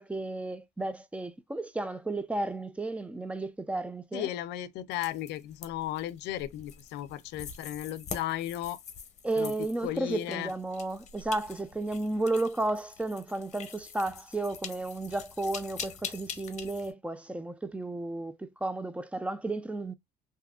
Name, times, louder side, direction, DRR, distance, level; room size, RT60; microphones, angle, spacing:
voice 1, 0.0-4.3 9.2-19.9, right 2 dB, 5° right, 0.4 m, -33 dB
voice 2, 4.1-8.8 9.4-9.5 9.8-10.5, left 13 dB, 85° left, 0.5 m, -35 dB
sound 1, 4.9-16.9, left 7 dB, 45° left, 0.8 m, -45 dB
3.5 x 2.7 x 2.3 m
cardioid pair, 110°, 17 cm